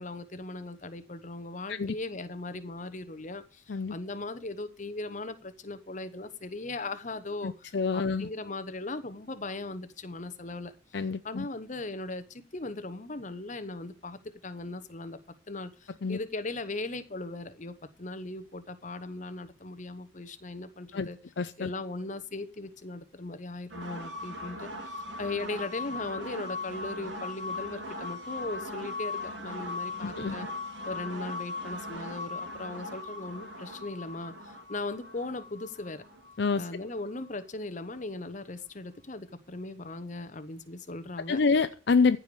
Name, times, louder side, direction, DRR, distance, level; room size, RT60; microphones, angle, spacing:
voice 1, 0.0-10.7 11.2-14.2 14.4-15.2 15.5-21.2 21.6-30.5 30.8-36.0 36.5-41.4, left 2 dB, 40° left, 11 dB, 0.9 m, -38 dB
voice 2, 7.4-8.3 10.9-11.5 16.0-16.2 20.9-21.1 21.4-21.7 30.0-30.3 36.4-36.7 41.3-42.2, left 4 dB, 60° left, 11 dB, 0.5 m, -27 dB
sound 1, 23.7-37.3, left 2 dB, 65° right, 2.4 m, -39 dB
14.5 x 4.9 x 6.9 m, 0.37 s
head